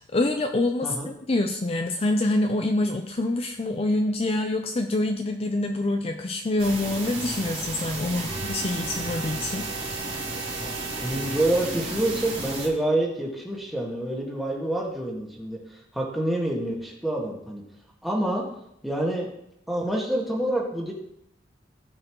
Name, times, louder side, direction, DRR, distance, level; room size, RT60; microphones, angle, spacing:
voice 1, 0.1-0.9 1.3-10.1, left 2 dB, 30° left, 4 dB, 0.5 m, -26 dB
sound 1, 6.6-12.7, right 2 dB, 35° right, 2.7 m, -33 dB
Organ, 8.3-12.2, right 4 dB, 60° right, 1.3 m, -39 dB
voice 2, 10.5-17.6 18.0-18.4 18.8-19.3 19.7-20.9, right 1 dB, ahead, -3 dB, 1.7 m, -27 dB
16.0 x 5.6 x 3.1 m, 0.79 s
head